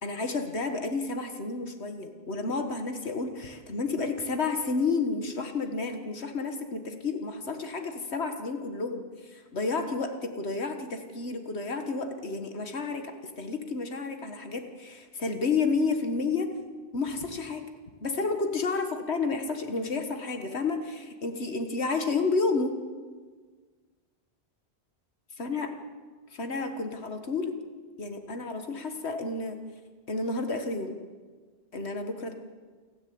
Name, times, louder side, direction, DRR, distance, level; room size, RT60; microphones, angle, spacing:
voice 1, 0.0-16.5 16.9-17.7 18.0-22.8 25.4-25.7 26.3-27.6 28.0-29.6 30.1-31.0 31.7-32.3, left 4 dB, 90° left, 6 dB, 1.9 m, -31 dB
28.5 x 11.5 x 8.7 m, 1.5 s
omnidirectional pair, 1.1 m